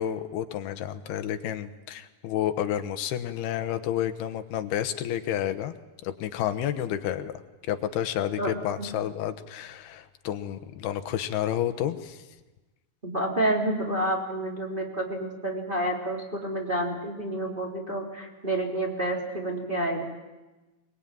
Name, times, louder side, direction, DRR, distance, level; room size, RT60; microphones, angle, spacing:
voice 1, 0.0-5.7 6.0-7.3 7.7-12.2, left 11 dB, 90° left, 9 dB, 3.1 m, -30 dB
voice 2, 13.0-20.0, right 1 dB, 15° right, -2 dB, 3.3 m, -29 dB
23.0 x 22.5 x 9.1 m, 1.1 s
omnidirectional pair, 4.5 m